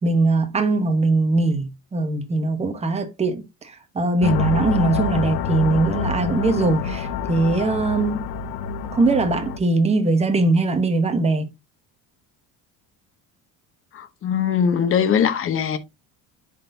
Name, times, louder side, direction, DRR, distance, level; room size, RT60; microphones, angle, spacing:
voice 1, 0.0-8.2 8.9-11.5, right 3 dB, 15° right, 1.0 m, -21 dB
sound 1, 4.2-9.6, left 5 dB, 75° left, 0.9 m, -26 dB
voice 2, 13.9-15.8, left 7 dB, 35° left, 0.9 m, -21 dB
10.5 x 4.1 x 2.6 m
cardioid pair, 160°, 38 cm